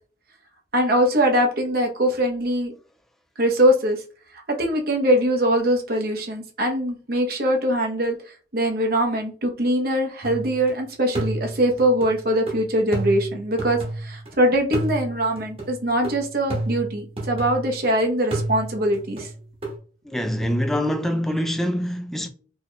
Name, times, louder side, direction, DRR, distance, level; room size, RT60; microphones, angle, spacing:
voice 1, 0.7-2.7 3.4-4.0 4.5-8.2 8.5-19.3, right 1 dB, 55° right, 0.8 m, -22 dB
sound 1, 10.2-10.7 11.1-14.3 14.7-17.9 18.3-19.8, right 2 dB, 30° right, 1.1 m, -31 dB
voice 2, 20.0-22.3, equal, ahead, 0.3 m, -24 dB
4.6 x 2.8 x 2.2 m
head